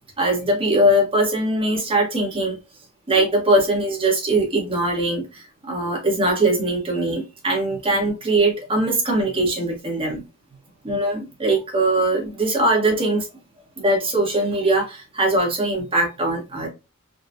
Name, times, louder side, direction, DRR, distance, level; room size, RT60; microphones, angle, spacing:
voice 1, 0.2-2.5 3.1-10.2 10.8-13.3 13.8-16.7, right 1 dB, 25° right, 1.2 m, -21 dB
3.8 x 2.3 x 2.6 m
head